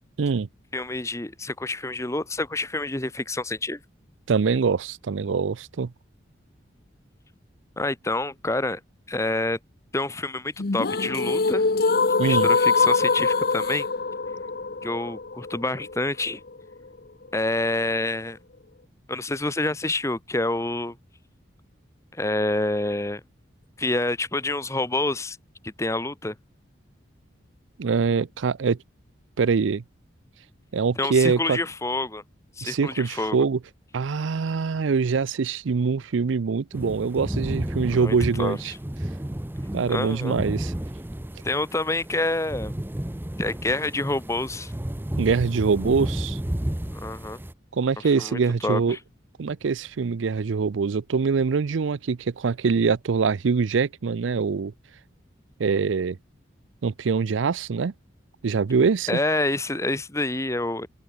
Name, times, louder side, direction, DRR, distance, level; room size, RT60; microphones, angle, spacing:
voice 1, 0.7-3.8 7.8-8.8 9.1-9.6 9.9-11.6 12.2-13.9 14.8-16.4 17.3-18.4 19.1-20.9 22.1-23.2 23.8-25.4 25.6-26.3 31.0-32.2 32.6-33.4 38.0-38.8 39.9-40.4 41.4-42.7 43.4-44.7 46.9-47.4 48.0-49.0 59.1-60.9, left 2 dB, 15° left, 1.1 m, -27 dB
voice 2, 4.3-5.9 12.2-12.5 27.8-28.8 29.4-29.8 30.7-31.6 32.6-33.6 33.9-38.7 39.7-40.7 45.2-46.4 47.7-49.0 49.4-54.7 55.6-56.2 56.8-57.9 58.4-59.1, right 5 dB, 85° right, 0.5 m, -24 dB
sound 1, 10.6-16.6, left 4 dB, 55° left, 0.8 m, -23 dB
sound 2, 36.7-47.5, right 1 dB, 10° right, 0.7 m, -32 dB
open air
head